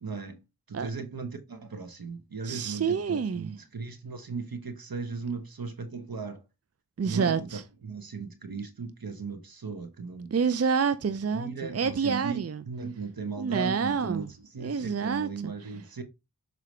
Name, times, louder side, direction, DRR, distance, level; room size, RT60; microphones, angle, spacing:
voice 1, 0.0-0.4 0.7-6.4 7.0-7.5 7.8-10.3 11.1-16.0, right 5 dB, 70° right, 1.2 m, -37 dB
voice 2, 2.4-3.5 7.0-7.6 10.3-12.6 13.4-14.3 14.6-15.5, right 6 dB, 40° right, 0.5 m, -28 dB
6.7 x 4.7 x 3.2 m
wide cardioid pair, 40°, 36 cm